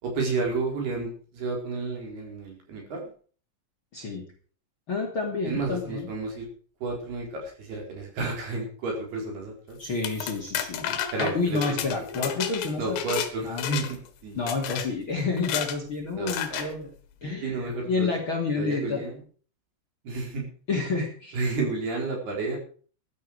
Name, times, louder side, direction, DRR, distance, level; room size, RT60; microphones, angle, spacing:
voice 1, 0.0-3.1 5.4-6.5 6.8-9.8 11.1-12.2 12.8-14.4 16.1-16.7 17.4-18.1 18.6-19.2 20.0-20.5 21.3-22.6, right 3 dB, 60° right, 0 dB, 6.7 m, -31 dB
voice 2, 3.9-4.2 4.9-6.1 9.8-13.0 13.4-13.8 14.4-16.9 17.2-19.0 20.7-21.4, left 4 dB, 35° left, 2 dB, 2.9 m, -29 dB
sound 1, 9.8-13.3 13.6-14.1 14.5-14.9 15.4-15.8 16.3-16.7, left 9 dB, 75° left, 3.7 m, -31 dB
15.0 x 12.5 x 4.9 m, 0.42 s
omnidirectional pair, 5.1 m